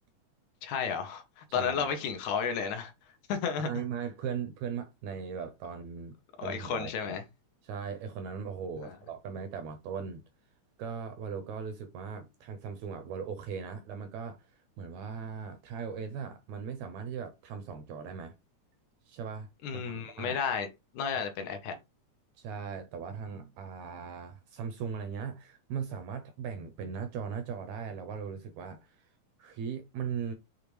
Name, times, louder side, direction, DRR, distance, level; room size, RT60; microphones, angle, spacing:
voice 1, 0.6-2.9 3.3-3.7 6.4-7.2 19.6-20.7 20.9-21.8, left 6 dB, 75° left, 2.0 m, -32 dB
voice 2, 1.5-1.9 3.6-6.2 6.4-6.9 7.6-10.2 10.8-14.5 14.8-18.3 19.1-20.4 22.4-29.1 29.4-30.3, right 6 dB, 80° right, 1.7 m, -38 dB
6.7 x 2.4 x 3.0 m
omnidirectional pair, 3.6 m